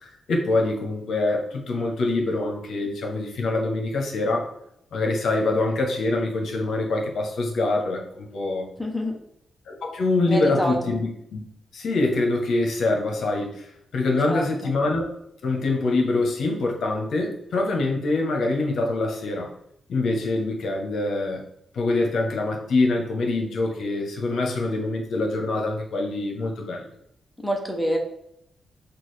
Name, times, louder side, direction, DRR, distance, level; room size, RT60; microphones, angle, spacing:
voice 1, 0.0-4.4 4.9-8.7 9.7-11.4 11.7-15.1 15.4-19.5 19.9-21.4 21.7-26.9, left 2 dB, 65° left, 1 dB, 0.9 m, -25 dB
voice 2, 8.8-9.2 10.3-10.8 14.3-14.7 27.4-28.0, equal, ahead, 1 dB, 0.7 m, -26 dB
6.0 x 2.4 x 3.2 m, 0.76 s
wide cardioid pair, 150°, 0 cm